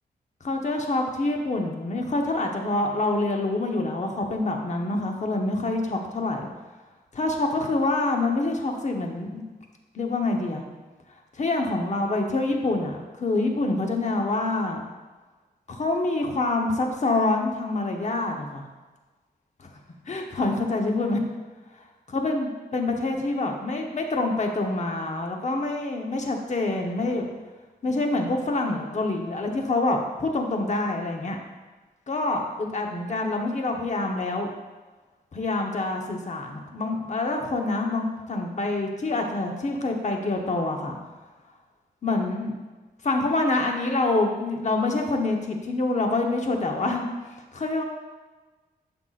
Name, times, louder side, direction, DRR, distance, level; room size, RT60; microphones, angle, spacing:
voice 1, 0.4-6.5 7.1-9.4 9.9-10.6 11.4-14.8 15.7-18.6 19.6-19.7 20.1-21.2 22.1-27.2 27.8-31.4 32.1-34.5 35.3-41.0 42.0-42.5 43.0-47.0 47.5-47.8, left 2 dB, 45° left, 2 dB, 1.1 m, -26 dB
11.5 x 5.8 x 2.5 m, 1.3 s
wide cardioid pair, 110°, 17 cm